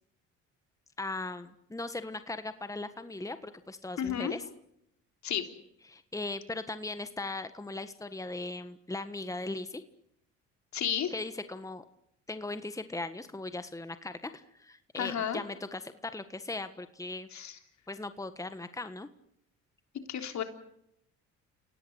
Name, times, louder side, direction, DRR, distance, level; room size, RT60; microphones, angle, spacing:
voice 1, 1.0-4.4 5.9-9.8 11.1-11.8 12.3-17.3 17.9-19.1, left 2 dB, 10° left, 10 dB, 1.5 m, -38 dB
voice 2, 4.0-4.3 5.2-5.5 10.7-11.1 15.0-15.4 17.3-17.6 20.1-20.4, left 9 dB, 60° left, 6 dB, 3.5 m, -32 dB
30.0 x 18.0 x 8.2 m, 0.79 s
supercardioid pair, 65°, 32 cm